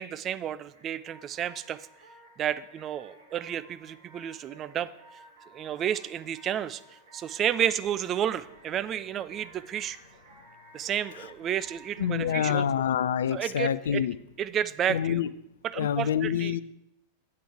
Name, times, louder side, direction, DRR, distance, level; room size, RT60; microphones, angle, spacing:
voice 1, 0.0-1.8 2.4-4.9 5.5-6.8 7.1-10.0 10.7-12.6 13.3-14.0 14.4-15.2 15.6-16.6, right 10 dB, 30° right, 14 dB, 0.4 m, -31 dB
sound 1, 0.6-14.1, right 2 dB, 65° right, 1.6 m, -55 dB
voice 2, 12.0-14.2 14.9-15.3 15.8-16.6, left 9 dB, 60° left, 17 dB, 0.3 m, -27 dB
8.4 x 7.7 x 4.7 m, 0.79 s
figure-of-eight pair, 90°, 0 cm